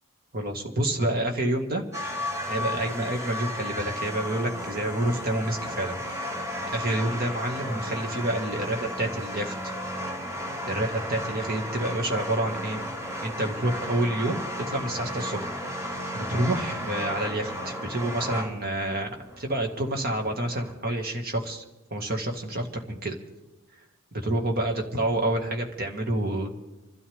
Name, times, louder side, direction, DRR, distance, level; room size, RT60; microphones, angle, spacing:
voice 1, 0.3-2.1 2.5-6.0 6.7-9.5 10.7-12.8 13.2-14.4 14.7-21.6 21.9-23.2 24.1-26.5, right 1 dB, 45° right, 3 dB, 2.1 m, -28 dB
sound 1, 1.9-20.7, equal, 15° right, 2.1 m, -34 dB
27.0 x 13.0 x 3.6 m, 1.1 s
head